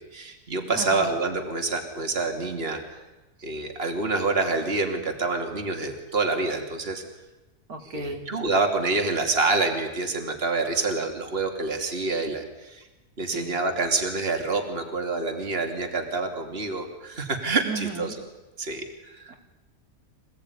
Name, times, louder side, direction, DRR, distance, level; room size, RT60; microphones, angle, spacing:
voice 1, 0.0-3.0 3.4-7.0 7.8-12.8 13.2-18.2 18.6-19.3, right 3 dB, 40° right, 4 dB, 3.1 m, -27 dB
voice 2, 0.7-1.1 7.7-8.2 13.3-13.6 17.6-18.1 19.3-19.4, right 3 dB, 75° right, 3 dB, 3.4 m, -34 dB
27.0 x 18.0 x 9.9 m, 1.1 s
omnidirectional pair, 1.6 m